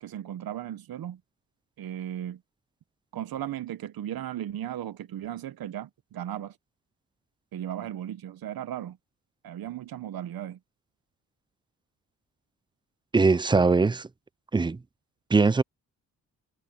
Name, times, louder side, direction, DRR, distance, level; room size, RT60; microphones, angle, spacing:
voice 1, 0.0-1.2 1.8-2.4 3.1-6.6 7.5-9.0 9.4-10.6, right 11 dB, 75° right, 1.0 m, -36 dB
voice 2, 13.1-14.1 14.5-14.8 15.3-15.6, right 4 dB, 15° right, 0.4 m, -21 dB
cardioid pair, 75°, 36 cm